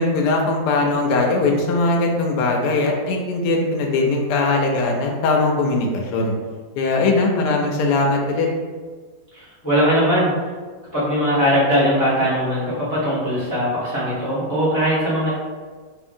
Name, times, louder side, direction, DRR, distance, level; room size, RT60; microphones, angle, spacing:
voice 1, 0.0-6.3 6.7-8.5, left 3 dB, 75° left, 0 dB, 1.1 m, -20 dB
voice 2, 9.3-10.3 10.9-15.3, equal, 20° left, -11 dB, 0.4 m, -20 dB
2.7 x 2.6 x 2.5 m, 1.5 s
omnidirectional pair, 2.0 m